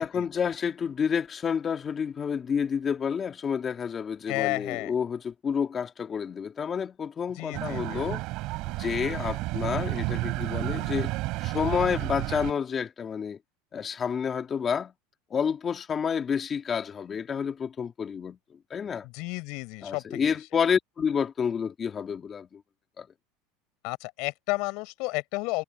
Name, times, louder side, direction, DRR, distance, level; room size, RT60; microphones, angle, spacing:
voice 1, 0.0-8.2 8.8-11.1 11.4-13.4 13.7-14.9 15.3-18.4 18.7-19.1 19.8-22.6 23.0-23.1, left 7 dB, 25° left, 2.6 m, -29 dB
voice 2, 4.3-4.9 7.4-8.1 19.0-20.4 23.8-25.6, left 27 dB, 55° left, 6.5 m, -32 dB
sound 1, 7.5-12.5, right 21 dB, 50° right, 7.2 m, -31 dB
supercardioid pair, 145°, 0 cm